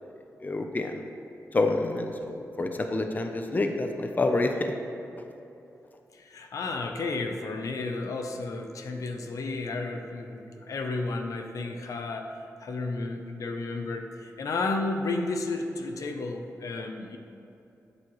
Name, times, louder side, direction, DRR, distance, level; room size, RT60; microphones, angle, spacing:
voice 1, 0.4-1.0 1.5-4.7, left 2 dB, 30° left, 5 dB, 0.6 m, -28 dB
voice 2, 6.1-12.3 12.6-17.2, left 3 dB, 75° left, 4 dB, 0.7 m, -32 dB
12.5 x 7.6 x 3.1 m, 2.8 s
wide cardioid pair, 90°, 6 cm